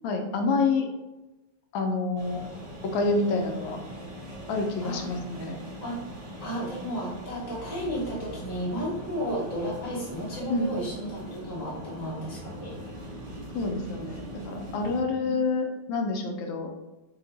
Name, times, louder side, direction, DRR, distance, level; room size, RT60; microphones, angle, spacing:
voice 1, 0.0-0.9 1.7-2.4 2.8-3.8 4.5-5.6 10.5-10.7 13.5-16.7, left 3 dB, 80° left, 3 dB, 1.3 m, -27 dB
sound 1, 2.2-15.0, equal, 45° right, 1.2 m, -41 dB
voice 2, 6.4-12.7 15.3-15.4, equal, 15° right, -9 dB, 0.7 m, -33 dB
3.3 x 2.8 x 3.9 m, 1.1 s
omnidirectional pair, 2.2 m